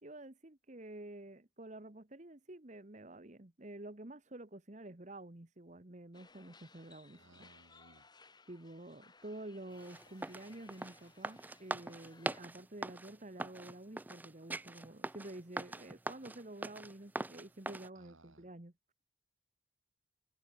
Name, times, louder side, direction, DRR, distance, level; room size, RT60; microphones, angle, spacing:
voice 1, 0.0-7.5 8.5-18.7, right 1 dB, 35° right, 1.3 m, -50 dB
sound 1, 6.1-12.4, left 4 dB, 20° left, 5.1 m, -62 dB
voice 2, 7.1-8.1 17.9-18.5, right 2 dB, 85° right, 4.5 m, -63 dB
sound 2, 9.8-17.9, right 2 dB, 10° right, 0.3 m, -42 dB
head